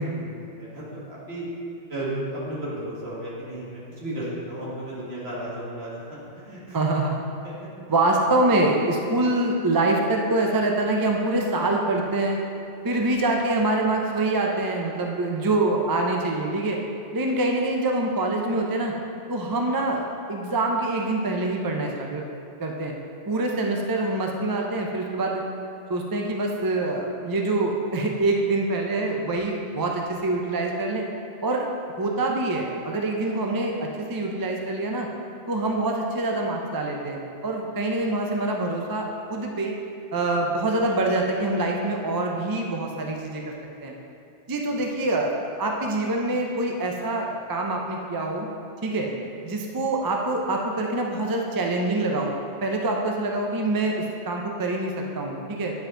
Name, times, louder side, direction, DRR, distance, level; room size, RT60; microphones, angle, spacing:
voice 1, 0.0-1.5 1.9-6.0 6.3-6.8 7.4-7.7, right 1 dB, 55° right, -7 dB, 2.1 m, -34 dB
voice 2, 6.7-7.2 7.9-12.4 12.8-16.8 17.1-18.9 19.3-22.2 22.6-22.9 23.3-25.4 25.9-31.0 31.4-31.6 32.0-35.1 35.5-37.2 37.4-39.7 40.1-43.4 43.8-43.9 44.5-48.5 48.8-49.1 49.4-52.3 52.6-55.7, right 2 dB, 35° right, 1 dB, 0.3 m, -25 dB
9.4 x 4.8 x 3.8 m, 2.7 s
omnidirectional pair, 1.3 m